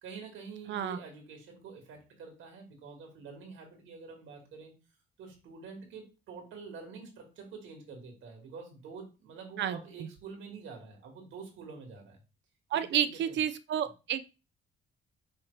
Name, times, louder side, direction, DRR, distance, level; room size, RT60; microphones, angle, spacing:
voice 1, 0.0-4.7 5.2-12.2 12.7-13.4, right 5 dB, 85° right, 1 dB, 1.8 m, -47 dB
voice 2, 0.7-1.0 9.6-9.8 12.7-14.3, right 9 dB, 65° right, 11 dB, 0.5 m, -30 dB
5.7 x 2.9 x 3.2 m, 0.30 s
cardioid pair, 90°, 20 cm